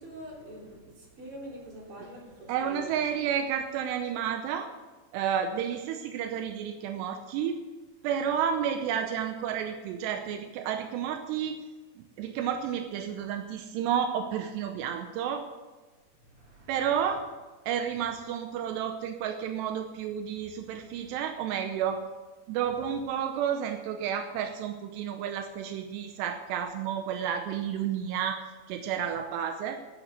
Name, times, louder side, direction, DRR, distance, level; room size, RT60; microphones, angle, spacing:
voice 1, 0.0-2.9 16.2-16.7, right 1 dB, 35° right, -3 dB, 4.1 m, -45 dB
voice 2, 2.5-4.7 5.1-7.6 8.0-11.6 12.0-15.5 16.7-17.2 17.7-22.0 22.5-28.4 28.7-29.8, right 8 dB, 85° right, 6 dB, 2.9 m, -31 dB
13.5 x 8.8 x 6.5 m, 1.3 s
omnidirectional pair, 5.0 m